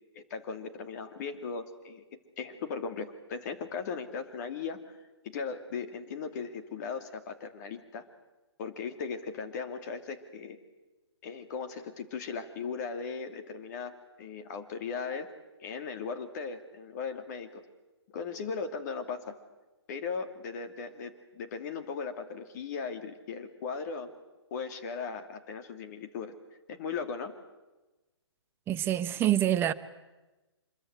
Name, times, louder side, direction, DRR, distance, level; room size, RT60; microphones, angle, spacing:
voice 1, 0.1-2.0 2.4-4.8 5.2-8.0 8.6-10.6 11.2-13.9 14.2-15.3 15.6-17.6 18.1-19.4 19.9-24.1 24.5-26.3 26.7-27.3, left 5 dB, 40° left, 2.7 m, -37 dB
voice 2, 28.7-29.7, right 12 dB, 15° right, 0.9 m, -26 dB
26.0 x 22.0 x 8.1 m
figure-of-eight pair, 130°, 15 cm